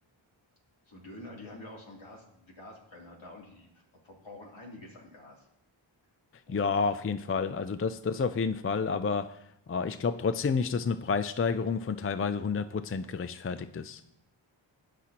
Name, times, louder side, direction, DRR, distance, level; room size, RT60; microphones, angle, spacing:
voice 1, 0.9-3.7 4.0-5.5 6.5-6.9, left 1 dB, 70° left, -3 dB, 3.1 m, -48 dB
voice 2, 6.5-9.4 9.7-14.0, left 5 dB, 30° left, 12 dB, 0.5 m, -30 dB
18.0 x 5.9 x 2.9 m, 0.75 s
cardioid pair, 55°, 49 cm